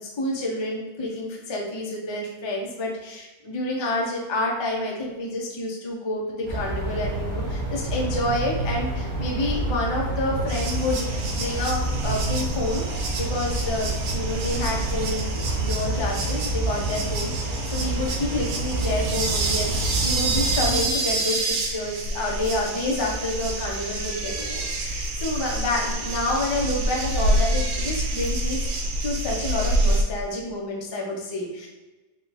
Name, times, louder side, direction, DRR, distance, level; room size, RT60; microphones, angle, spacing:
voice 1, 0.0-28.6 29.0-31.7, left 2 dB, 35° left, -2 dB, 0.4 m, -29 dB
sound 1, 6.5-20.8, right 2 dB, 70° right, 1.3 m, -28 dB
sound 2, 10.5-30.0, right 2 dB, 90° right, 1.2 m, -28 dB
3.6 x 2.3 x 4.1 m, 1.2 s
omnidirectional pair, 1.6 m